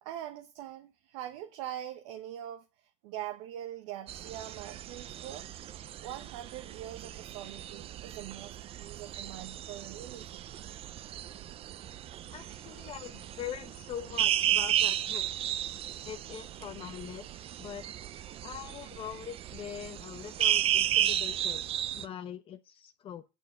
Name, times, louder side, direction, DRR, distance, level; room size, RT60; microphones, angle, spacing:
voice 1, 0.0-5.5 6.0-10.5, right 12 dB, 75° right, 1.2 m, -43 dB
sound 1, 4.1-22.1, right 11 dB, 35° right, 0.6 m, -34 dB
voice 2, 12.3-15.3 16.0-17.8 18.4-23.2, left 9 dB, 35° left, 0.9 m, -43 dB
9.2 x 6.8 x 7.7 m
supercardioid pair, 135°, 16 cm